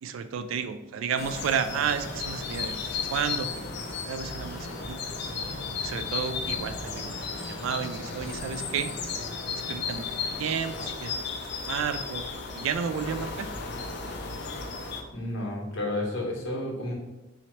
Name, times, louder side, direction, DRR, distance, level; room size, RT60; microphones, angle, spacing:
voice 1, 0.0-3.7 4.1-5.1 5.8-7.2 7.5-8.9 9.7-10.0 10.4-11.3 11.6-12.3 12.5-13.5, right 7 dB, 85° right, 10 dB, 0.3 m, -31 dB
sound 1, 1.2-15.0, left 4 dB, 60° left, 0.5 m, -34 dB
voice 2, 15.1-16.9, left 1 dB, 80° left, -2 dB, 1.1 m, -31 dB
4.0 x 2.9 x 3.1 m, 1.0 s
head